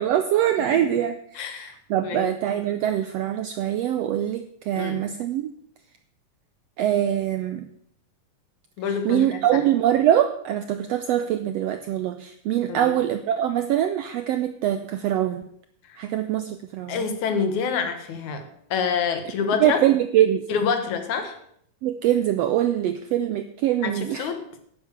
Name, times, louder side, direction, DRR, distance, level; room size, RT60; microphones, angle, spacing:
voice 1, 0.0-5.5 6.8-7.7 8.9-15.4 16.0-17.0 19.6-20.4 21.8-24.3, right 11 dB, 90° right, 9 dB, 1.4 m, -23 dB
voice 2, 1.4-1.7 2.0-2.3 4.7-5.1 8.8-9.3 12.7-12.9 16.9-19.8 20.5-21.4 23.8-24.4, left 6 dB, 70° left, 7 dB, 2.7 m, -27 dB
10.5 x 9.5 x 6.7 m, 0.68 s
omnidirectional pair, 3.6 m